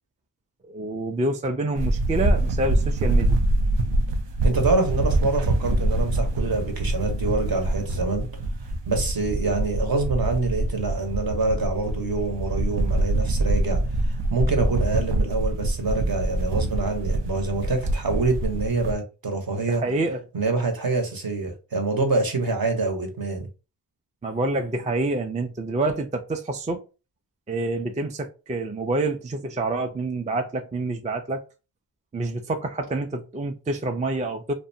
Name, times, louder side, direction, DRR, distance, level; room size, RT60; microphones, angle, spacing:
voice 1, 0.7-3.4 19.7-20.2 24.2-26.8 27.5-31.4 32.1-34.5, right 2 dB, 20° right, 0.4 m, -27 dB
sound 1, 1.7-18.9, right 1 dB, 70° right, 0.5 m, -25 dB
voice 2, 4.4-8.3 8.9-13.8 14.1-19.8 20.3-23.5, right 3 dB, 55° right, 0.9 m, -26 dB
2.5 x 2.2 x 2.6 m
cardioid pair, 50°, 44 cm